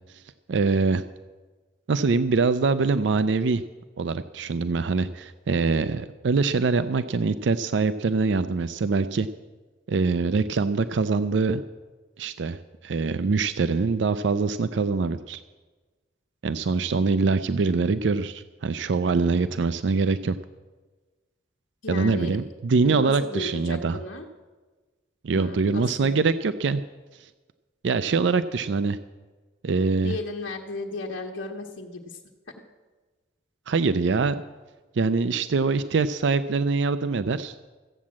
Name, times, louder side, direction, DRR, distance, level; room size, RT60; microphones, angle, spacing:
voice 1, 0.5-1.0 1.9-3.6 4.0-9.3 9.9-11.6 12.2-12.6 12.8-15.4 16.4-20.4 21.9-24.0 25.2-26.8 27.2-27.3 27.8-29.0 29.6-30.1 33.7-34.4 34.9-37.5, right 4 dB, 70° right, 12 dB, 0.4 m, -24 dB
voice 2, 21.8-22.4 22.8-24.3 25.4-26.3 30.0-32.2, left 2 dB, 85° left, -1 dB, 1.2 m, -35 dB
14.5 x 8.6 x 7.4 m, 1.3 s
head